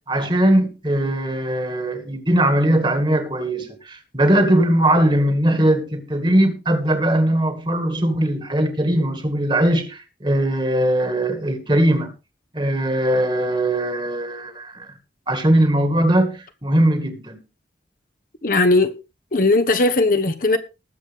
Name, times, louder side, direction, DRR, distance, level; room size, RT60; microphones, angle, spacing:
voice 1, 0.0-12.1 12.5-14.9 15.3-17.4, right 1 dB, 25° right, 2.0 m, -20 dB
voice 2, 18.4-18.9 19.3-20.6, left 2 dB, 50° left, 1.2 m, -17 dB
20.0 x 7.4 x 3.5 m
head